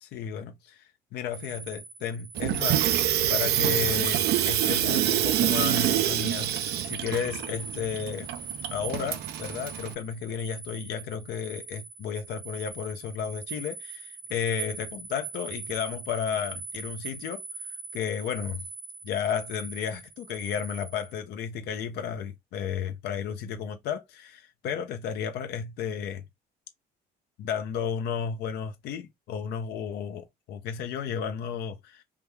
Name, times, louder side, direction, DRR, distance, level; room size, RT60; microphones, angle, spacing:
voice 1, 0.0-0.8 1.1-2.8 3.3-8.3 8.7-17.4 17.9-18.6 19.0-26.2 27.4-32.0, left 7 dB, 75° left, 0.5 m, -33 dB
sound 1, 1.3-21.2, right 4 dB, 25° right, 0.7 m, -41 dB
Water tap faucet / Sink (filling or washing), 2.4-9.9, right 12 dB, 75° right, 0.5 m, -26 dB
3.5 x 2.3 x 3.1 m
cardioid pair, 110°, 17 cm